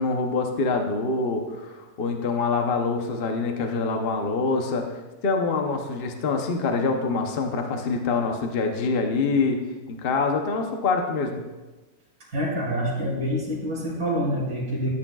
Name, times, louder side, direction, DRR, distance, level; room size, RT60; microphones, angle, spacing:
voice 1, 0.0-4.8 5.2-9.6 9.9-11.4, left 4 dB, 45° left, 4 dB, 0.8 m, -25 dB
voice 2, 12.3-14.9, equal, 70° right, -7 dB, 3.2 m, -26 dB
13.5 x 8.6 x 2.3 m, 1.2 s
omnidirectional pair, 1.7 m